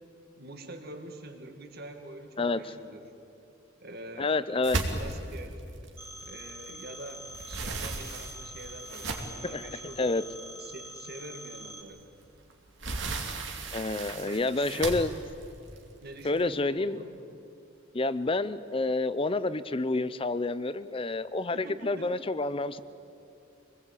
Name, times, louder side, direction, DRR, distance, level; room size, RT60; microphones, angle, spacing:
voice 1, 0.0-3.0 3.8-4.4 4.9-5.6 6.2-10.1 10.6-12.1 14.1-14.9 16.0-17.1 21.5-22.1, right 1 dB, 55° right, 5 dB, 2.2 m, -45 dB
voice 2, 4.2-4.9 9.4-9.6 10.0-10.2 13.7-15.1 16.2-17.0 17.9-22.8, left 2 dB, 30° left, 15 dB, 0.6 m, -29 dB
sound 1, 4.6-6.8 7.1-9.5 10.2-10.3 10.7-10.8 12.2-16.5, right 3 dB, 70° right, 2.5 m, -36 dB
Telephone, 6.0-11.8, right 1 dB, 10° right, 2.3 m, -45 dB
25.0 x 20.0 x 8.4 m, 2.6 s
head